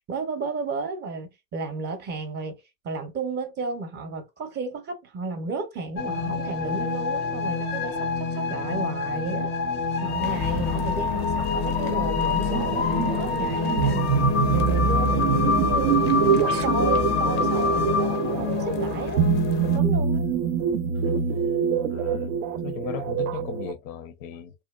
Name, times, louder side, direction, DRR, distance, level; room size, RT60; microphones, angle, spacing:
voice 1, 0.1-9.5 10.0-14.2 14.5-16.0 16.4-19.2 19.6-20.3, right 3 dB, 25° right, 0.6 m, -33 dB
sound 1, 6.0-19.8, left 5 dB, 25° left, 0.4 m, -26 dB
sound 2, 12.4-23.7, right 7 dB, 70° right, 0.5 m, -25 dB
voice 2, 20.9-21.3 21.9-24.5, left 9 dB, 70° left, 0.6 m, -38 dB
2.7 x 2.2 x 2.2 m
supercardioid pair, 120°, 40 cm